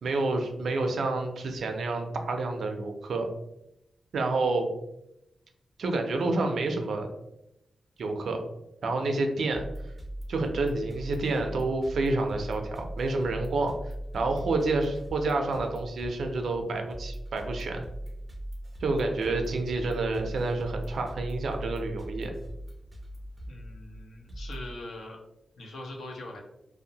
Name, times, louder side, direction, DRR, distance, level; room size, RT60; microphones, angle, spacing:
voice 1, 0.0-3.3 4.1-4.7 5.8-7.1 8.0-8.4 8.8-9.7 10.3-13.7 14.1-17.8 18.8-22.3, right 3 dB, 75° right, 4 dB, 0.4 m, -29 dB
sound 1, 9.5-24.7, equal, 15° right, 0.5 m, -40 dB
voice 2, 23.5-25.2 25.6-26.4, left 1 dB, 90° left, 0 dB, 0.6 m, -42 dB
2.6 x 2.0 x 2.7 m, 0.86 s
wide cardioid pair, 145°, 0 cm